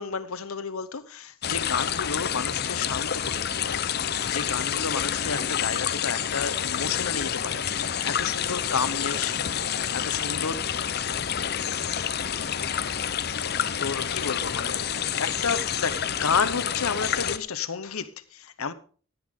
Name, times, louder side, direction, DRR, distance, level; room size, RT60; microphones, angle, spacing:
voice 1, 0.0-10.5 13.7-18.7, left 5 dB, 85° left, 1.0 m, -31 dB
sound 1, 1.4-17.4, left 8 dB, 50° left, 0.6 m, -28 dB
16.5 x 9.4 x 3.7 m
head